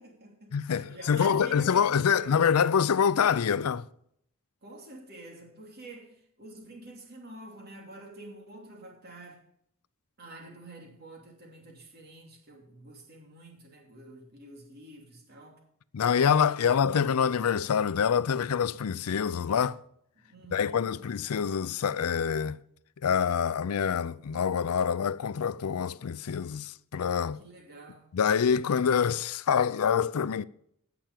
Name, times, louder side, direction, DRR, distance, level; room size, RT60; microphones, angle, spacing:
voice 1, 0.0-2.4 4.6-9.4 10.2-15.6 16.5-16.8 20.2-21.0 27.4-28.1, right 2 dB, 45° right, 2.8 m, -48 dB
voice 2, 0.5-3.9 15.9-19.8 20.5-22.6 23.0-27.4 28.1-30.4, left 7 dB, 85° left, 0.4 m, -26 dB
16.5 x 5.9 x 5.1 m
head